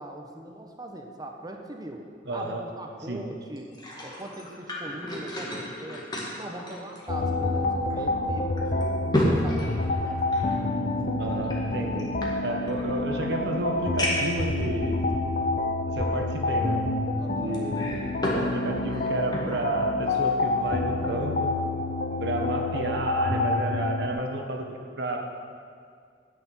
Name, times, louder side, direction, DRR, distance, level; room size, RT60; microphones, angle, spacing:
voice 1, 0.0-2.0 2.3-3.7 4.0-6.0 6.4-10.4 17.2-17.6, right 1 dB, 20° right, 3 dB, 1.1 m, -40 dB
voice 2, 2.3-2.6 3.1-3.3 11.2-12.1 12.4-15.0 15.9-16.9 17.3-18.0 18.3-21.5 22.2-25.2, right 1 dB, 65° right, 2 dB, 1.5 m, -31 dB
sound 1, 3.6-7.6 7.9-8.0 8.6-10.6 11.4-12.9 13.4-13.5 14.0-14.4 15.2-15.3 17.5-18.5 18.8-19.7 20.1-20.3, left 1 dB, 25° left, 1.9 m, -31 dB
sound 2, 7.1-24.1, left 2 dB, 50° left, 0.8 m, -28 dB
9.6 x 7.0 x 8.5 m, 2.2 s
head